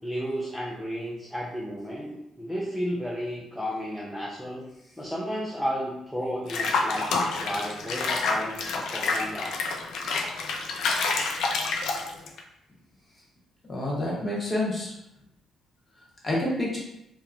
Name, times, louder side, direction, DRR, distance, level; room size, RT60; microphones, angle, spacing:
voice 1, 0.0-4.7 5.0-9.7, equal, ahead, -6 dB, 0.5 m, -33 dB
Water / Bathtub (filling or washing), 6.5-12.4, left 4 dB, 80° left, 0.3 m, -28 dB
voice 2, 13.7-14.9 16.2-16.8, left 1 dB, 25° left, -5 dB, 1.1 m, -28 dB
2.8 x 2.3 x 2.5 m, 0.83 s
cardioid pair, 90°, 0 cm